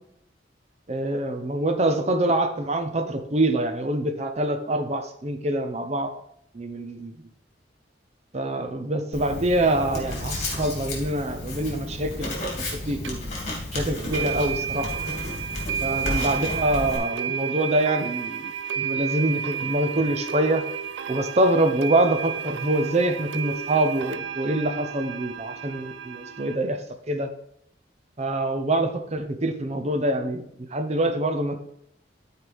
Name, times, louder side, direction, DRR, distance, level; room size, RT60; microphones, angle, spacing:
voice 1, 0.9-6.1 6.5-7.1 8.3-13.3 13.7-14.9 15.8-20.6 21.1-26.8 27.1-27.3 28.2-30.4 30.7-31.6, right 1 dB, 35° right, 7 dB, 0.7 m, -25 dB
Writing, 9.1-17.0, left 1 dB, 40° left, 2.3 m, -32 dB
sound 1, 13.0-13.1 14.1-26.6, right 8 dB, 75° right, 0.4 m, -32 dB
12.0 x 4.6 x 3.5 m, 0.73 s
head